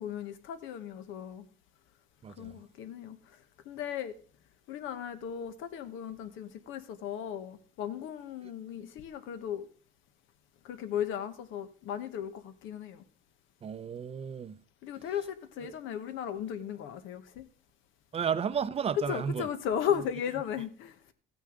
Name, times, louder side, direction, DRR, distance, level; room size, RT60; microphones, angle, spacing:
voice 1, 0.0-1.4 2.4-3.4 3.6-4.1 4.7-9.7 10.6-13.0 14.8-17.4 19.1-21.0, left 9 dB, 75° left, 1.2 m, -36 dB
voice 2, 2.2-2.6 13.6-14.6 15.6-15.7 18.1-19.5, right 7 dB, 30° right, 0.5 m, -33 dB
14.0 x 9.2 x 3.8 m
cardioid pair, 120°, 20 cm